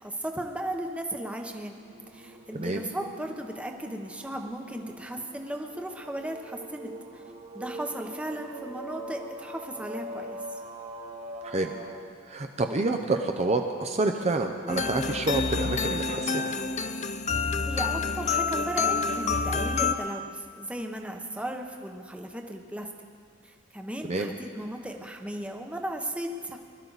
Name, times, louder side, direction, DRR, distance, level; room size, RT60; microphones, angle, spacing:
voice 1, 0.0-1.8 2.1-7.2 7.5-10.6 17.4-22.9 23.4-26.6, right 1 dB, 5° right, 3 dB, 0.9 m, -36 dB
sound 1, 1.6-11.9, right 1 dB, 90° right, 2.6 m, -43 dB
voice 2, 12.3-16.5 24.1-24.3, right 2 dB, 35° right, 4 dB, 0.6 m, -28 dB
sound 2, 14.7-20.0, left 4 dB, 35° left, 0.5 m, -28 dB
21.0 x 12.5 x 4.0 m, 2.2 s
head